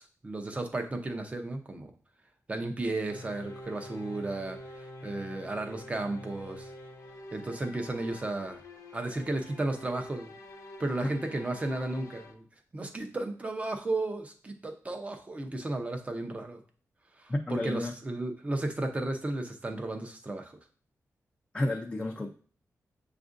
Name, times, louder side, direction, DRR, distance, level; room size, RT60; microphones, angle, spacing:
voice 1, 0.0-1.9 2.5-6.7 7.3-8.6 8.9-10.3 10.8-12.5 12.7-16.6 17.2-20.5, right 2 dB, 25° right, 4 dB, 0.6 m, -34 dB
sound 1, 3.1-12.3, left 1 dB, 85° left, 0.9 m, -46 dB
voice 2, 17.3-17.9 21.5-22.3, left 1 dB, 20° left, 1 dB, 0.4 m, -31 dB
7.0 x 2.4 x 2.5 m, 0.43 s
wide cardioid pair, 145°, 6 cm